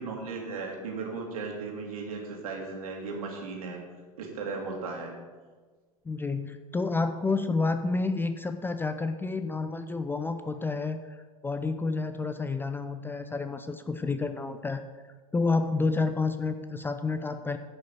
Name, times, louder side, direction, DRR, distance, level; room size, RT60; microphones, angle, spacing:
voice 1, 0.0-3.8 4.2-5.1, right 4 dB, 65° right, 0 dB, 2.4 m, -36 dB
voice 2, 6.1-11.0 11.4-14.8 15.3-17.6, left 3 dB, 10° left, 9 dB, 0.5 m, -29 dB
10.0 x 5.6 x 7.0 m, 1.4 s
figure-of-eight pair, 80°, 19 cm